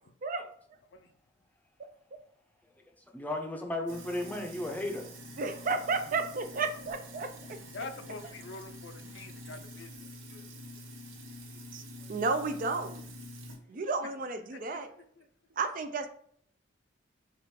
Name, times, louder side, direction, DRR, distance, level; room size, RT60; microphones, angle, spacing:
voice 1, 3.1-5.1, left 1 dB, 10° left, 0.6 m, -34 dB
Sink (filling or washing), 3.9-13.6, equal, 90° right, 1.0 m, -47 dB
voice 2, 5.4-7.3 11.7-11.8 12.1-13.0 13.7-14.9 15.6-16.1, right 4 dB, 45° right, 0.4 m, -32 dB
voice 3, 7.7-10.5 14.5-14.6 15.0-15.2, left 3 dB, 65° left, 0.5 m, -46 dB
6.6 x 2.5 x 3.2 m
head